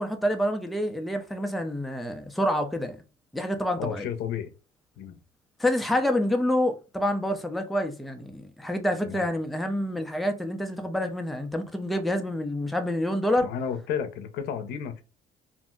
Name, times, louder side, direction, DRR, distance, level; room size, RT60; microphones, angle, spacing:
voice 1, 0.0-3.0 3.3-4.1 5.6-13.5, left 1 dB, ahead, 0.4 m, -27 dB
voice 2, 3.8-4.5 5.0-5.2 9.0-9.3 13.4-15.0, left 8 dB, 75° left, 0.6 m, -32 dB
2.5 x 2.0 x 3.6 m
cardioid pair, 110°, 17 cm